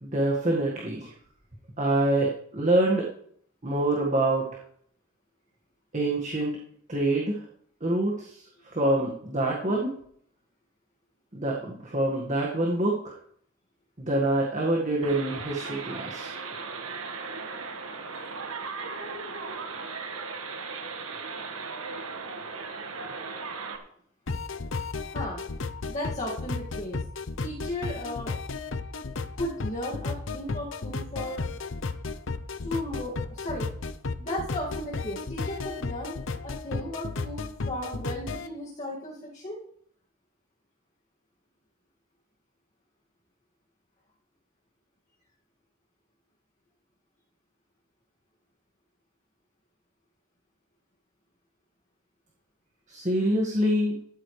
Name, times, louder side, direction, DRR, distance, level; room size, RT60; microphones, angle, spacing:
voice 1, 0.0-1.1 1.8-3.1 3.6-4.6 5.9-6.6 6.9-7.5 7.8-8.5 8.7-10.0 11.3-13.2 14.0-16.3 52.9-54.0, right 1 dB, 35° right, -2 dB, 1.8 m, -26 dB
sound 1, 15.0-23.8, right 4 dB, 85° right, 1.7 m, -37 dB
sound 2, 24.3-38.5, left 3 dB, 65° left, 0.8 m, -34 dB
voice 2, 25.1-25.4 25.9-27.0 27.4-28.3 29.4-31.4 32.6-33.7 34.1-36.2 36.4-39.6, left 1 dB, 35° left, -6 dB, 2.2 m, -35 dB
13.5 x 13.0 x 3.3 m, 0.66 s
head